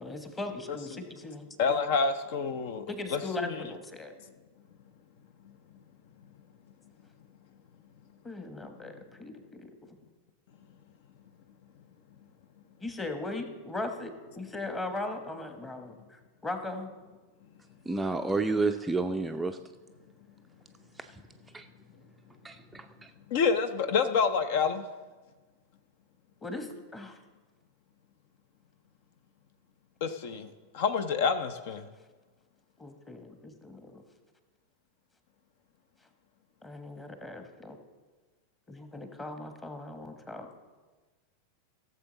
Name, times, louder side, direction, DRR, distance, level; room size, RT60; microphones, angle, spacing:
voice 1, 0.0-1.6 2.9-4.1 8.2-10.0 12.8-16.9 26.4-27.2 32.8-34.0 36.6-37.8 38.7-40.5, left 2 dB, 15° left, 7 dB, 1.3 m, -39 dB
voice 2, 1.6-2.9 3.1-3.6 23.3-24.8 30.0-31.9, left 5 dB, 50° left, 11 dB, 0.6 m, -28 dB
voice 3, 17.9-19.6 21.5-21.6 22.4-22.9, right 3 dB, 10° right, 6 dB, 0.4 m, -29 dB
16.0 x 7.3 x 4.0 m, 1.3 s
figure-of-eight pair, 90°, 0 cm